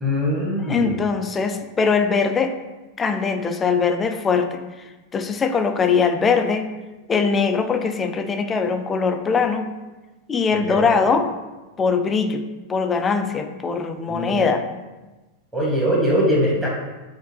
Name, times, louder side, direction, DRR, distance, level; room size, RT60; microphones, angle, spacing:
voice 1, 0.0-1.0 10.7-10.9 14.1-14.3 15.5-16.7, equal, 15° right, -4 dB, 1.3 m, -21 dB
voice 2, 0.6-2.6 3.0-4.6 5.1-6.7 7.1-9.7 10.3-11.3 11.8-12.4 12.7-14.6, left 5 dB, 20° left, 7 dB, 0.3 m, -21 dB
4.9 x 2.5 x 3.0 m, 1.2 s
figure-of-eight pair, 90°, 0 cm